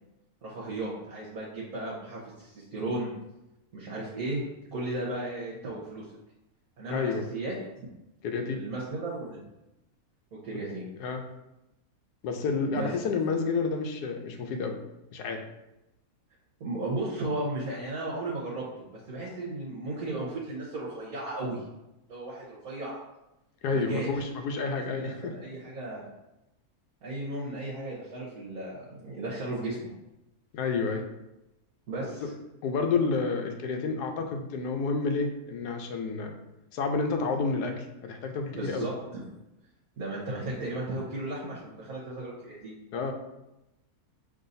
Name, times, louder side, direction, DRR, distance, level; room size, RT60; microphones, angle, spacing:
voice 1, 0.4-3.1 3.7-4.4 4.7-6.0 6.8-7.9 8.4-9.4 10.3-10.9 12.7-12.9 16.6-21.7 22.1-23.0 23.7-24.1 24.7-26.1 27.0-29.8 31.9-32.2 38.5-39.2 40.0-42.7, right 2 dB, 65° right, -8 dB, 1.5 m, -35 dB
voice 2, 6.9-7.3 8.2-8.6 11.0-11.2 12.2-14.7 15.1-15.4 23.6-25.3 30.5-31.0 32.6-36.3 36.7-38.9 42.9-43.1, left 4 dB, 85° left, 4 dB, 1.2 m, -29 dB
5.5 x 3.3 x 2.6 m, 0.93 s
omnidirectional pair, 1.7 m